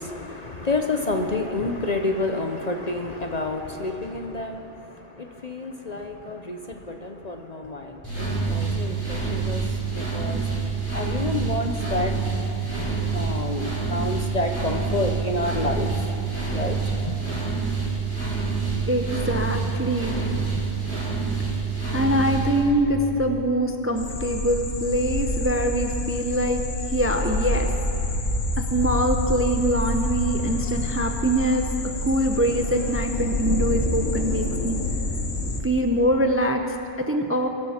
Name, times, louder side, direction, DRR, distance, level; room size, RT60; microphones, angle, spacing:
voice 1, 0.0-10.5 10.9-12.2 12.8-16.1 16.5-17.4, left 2 dB, 40° left, 4 dB, 0.7 m, -29 dB
sound 1, 8.0-22.6, right 5 dB, 10° left, 4.0 m, -27 dB
voice 2, 18.9-20.2 21.2-21.4 21.9-26.6 26.9-27.7 28.6-31.7 32.1-34.8 35.6-37.5, right 1 dB, 15° right, 5 dB, 0.5 m, -24 dB
sound 2, 24.0-35.6, left 2 dB, 85° left, 1.7 m, -27 dB
23.5 x 12.5 x 4.3 m, 3.0 s
omnidirectional pair, 1.3 m